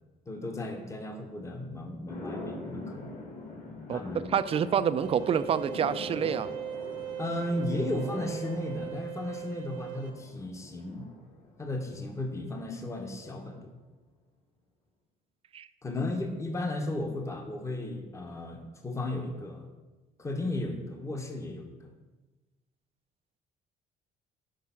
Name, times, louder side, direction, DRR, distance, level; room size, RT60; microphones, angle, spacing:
voice 1, 0.3-3.1 3.9-4.7 7.2-11.1 11.6-13.8 15.8-19.7 20.2-21.9, left 2 dB, 15° left, 4 dB, 0.9 m, -35 dB
sound 1, 2.1-12.4, left 2 dB, 45° left, 1.8 m, -43 dB
voice 2, 4.3-6.5 15.5-15.7, right 8 dB, 35° right, 14 dB, 0.3 m, -27 dB
sound 2, 5.0-10.1, right 10 dB, 80° right, 1.1 m, -39 dB
6.4 x 4.7 x 5.7 m, 1.2 s
cardioid pair, 110°, 17 cm